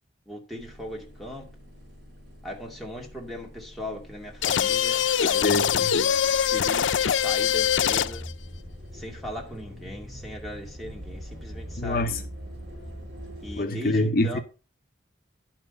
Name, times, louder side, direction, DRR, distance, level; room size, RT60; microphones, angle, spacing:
voice 1, 0.3-1.5 2.4-5.6 6.5-8.3 8.9-12.3 13.4-14.4, left 1 dB, ahead, 2.5 m, -38 dB
sound 1, 0.6-13.6, equal, 65° right, 4.8 m, -43 dB
sound 2, 4.4-8.3, left 8 dB, 90° left, 0.5 m, -23 dB
voice 2, 5.4-5.9 11.8-12.2 13.6-14.4, left 2 dB, 50° left, 0.8 m, -25 dB
11.0 x 5.9 x 5.4 m
head